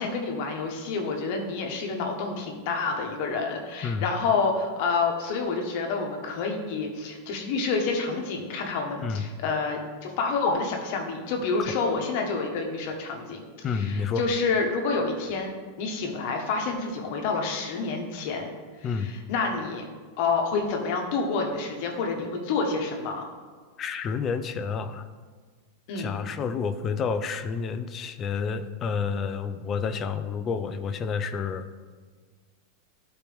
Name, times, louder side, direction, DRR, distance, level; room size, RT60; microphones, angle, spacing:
voice 1, 0.0-13.4 13.7-15.5 15.8-18.5 18.8-19.8 20.2-23.2 25.9-26.1, left 4 dB, 45° left, 2 dB, 1.2 m, -28 dB
voice 2, 13.6-14.2 18.8-19.1 23.8-25.1 26.0-31.7, left 5 dB, 20° left, 10 dB, 0.4 m, -29 dB
12.0 x 4.4 x 3.5 m, 1.5 s
supercardioid pair, 170°, 0 cm